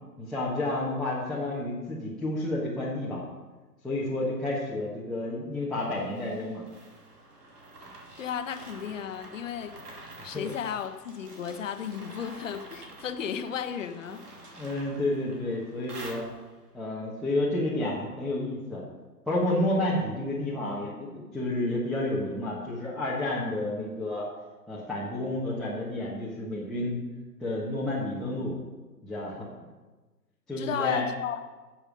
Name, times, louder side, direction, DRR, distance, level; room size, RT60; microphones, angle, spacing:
voice 1, 0.2-3.2 3.8-6.6 10.3-10.5 14.5-16.3 16.7-18.8 19.3-24.2 24.7-27.0 27.4-28.6 29.0-29.5 30.5-31.0, left 1 dB, ahead, -7 dB, 1.3 m, -30 dB
sound 1, 5.7-16.7, right 2 dB, 70° right, 2.8 m, -48 dB
voice 2, 8.2-9.8 10.2-14.3 30.6-31.5, left 8 dB, 50° left, 9 dB, 1.1 m, -34 dB
11.0 x 7.3 x 6.4 m, 1.3 s
figure-of-eight pair, 130°, 48 cm